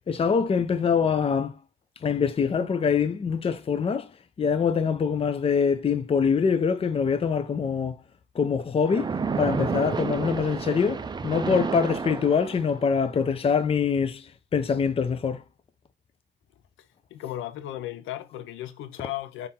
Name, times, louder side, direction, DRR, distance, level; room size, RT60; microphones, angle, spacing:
voice 1, 0.1-1.5 2.0-4.1 4.4-8.0 8.3-14.3 14.5-15.4, left 6 dB, 30° left, 0.5 m, -24 dB
Splash splatter, 8.8-12.9, right 5 dB, 20° right, 0.4 m, -30 dB
voice 2, 17.1-19.5, left 13 dB, 80° left, 0.5 m, -35 dB
3.5 x 2.6 x 4.2 m
cardioid pair, 90°, 20 cm